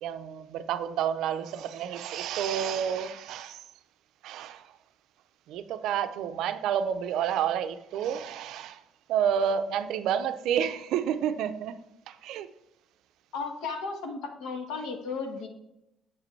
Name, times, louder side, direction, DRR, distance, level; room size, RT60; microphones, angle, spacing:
voice 1, 0.0-3.6 4.2-4.7 5.5-8.8 9.1-11.8 12.1-12.5, right 8 dB, 65° right, 0.4 m, -30 dB
voice 2, 13.3-15.5, left 4 dB, 75° left, 1.2 m, -34 dB
7.4 x 5.1 x 3.1 m
cardioid pair, 180°, 0 cm